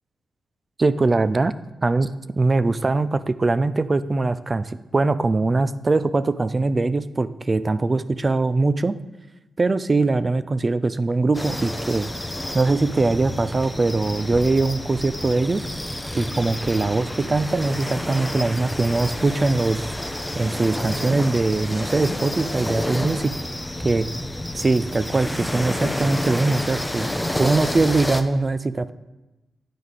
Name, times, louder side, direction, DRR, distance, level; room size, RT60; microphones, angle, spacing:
voice 1, 0.8-1.5 1.8-2.1 2.4-9.0 9.6-12.1 12.5-15.6 16.1-19.9 20.3-23.3 23.8-24.1 24.6-27.1 27.4-28.9, right 3 dB, 35° right, 14 dB, 0.4 m, -21 dB
sound 1, 11.3-28.2, left 1 dB, 10° left, 0.6 m, -29 dB
9.3 x 4.1 x 4.9 m, 1.0 s
cardioid pair, 60°, 0 cm